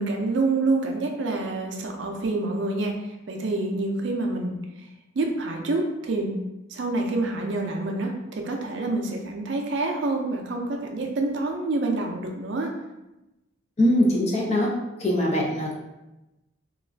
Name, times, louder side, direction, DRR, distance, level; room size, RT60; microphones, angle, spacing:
voice 1, 0.0-4.5 5.1-6.4 6.7-12.7, right 2 dB, 60° right, 2 dB, 0.4 m, -27 dB
voice 2, 13.8-14.7 15.0-15.7, left 1 dB, 30° left, -1 dB, 0.4 m, -22 dB
2.4 x 2.3 x 3.2 m, 0.98 s
head